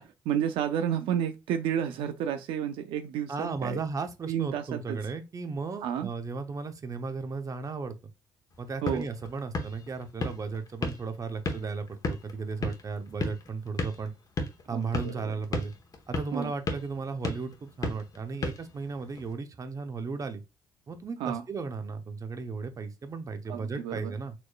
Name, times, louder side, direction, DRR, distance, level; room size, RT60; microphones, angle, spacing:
voice 1, 0.3-3.8 4.3-5.0 5.8-6.1 8.8-9.1 14.7-15.4 16.3-16.5 21.2-21.4 23.5-24.1, right 9 dB, 80° right, 0.4 m, -31 dB
voice 2, 3.3-7.9 8.6-14.1 14.7-15.7 16.1-20.4 20.9-24.3, right 4 dB, 40° right, 0.8 m, -35 dB
sound 1, 8.5-19.3, left 2 dB, 45° left, 1.0 m, -36 dB
4.3 x 3.0 x 2.3 m
supercardioid pair, 60°, 9 cm